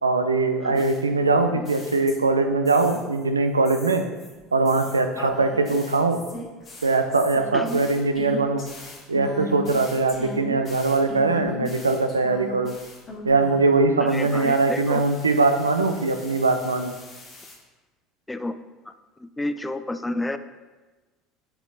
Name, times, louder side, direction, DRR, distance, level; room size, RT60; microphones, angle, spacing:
voice 1, 0.0-4.0 4.5-6.2 6.8-8.6 9.1-12.7 13.2-16.9, right 3 dB, 85° right, 7 dB, 0.4 m, -21 dB
sound 1, 0.7-2.4 2.6-3.2 3.6-13.7 14.1-17.5, left 1 dB, 40° left, 1.6 m, -39 dB
voice 2, 14.0-15.0 18.3-18.6 18.9-19.0 19.2-20.4, left 2 dB, 10° left, 10 dB, 0.4 m, -30 dB
8.7 x 4.4 x 2.6 m, 1.2 s
figure-of-eight pair, 65°, 0 cm